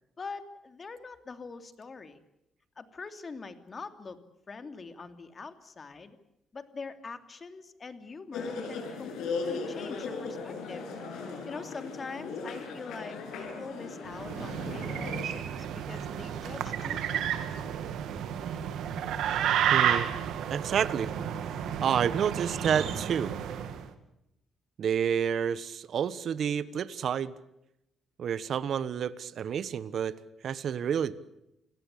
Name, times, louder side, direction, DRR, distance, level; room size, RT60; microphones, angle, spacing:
voice 1, 0.2-2.2 2.8-4.2 4.5-6.2 6.5-10.8 11.5-17.5, left 4 dB, 35° left, 9 dB, 2.7 m, -44 dB
sound 1, 8.3-15.3, left 4 dB, 85° left, 6.9 m, -37 dB
sound 2, 14.1-23.8, right 9 dB, 80° right, 2.4 m, -31 dB
voice 2, 19.7-20.1 20.5-21.1 21.8-23.3 24.8-27.3 28.2-30.1 30.4-31.1, right 8 dB, 60° right, 16 dB, 1.2 m, -29 dB
29.0 x 18.0 x 8.4 m, 0.84 s
cardioid pair, 90°, 0 cm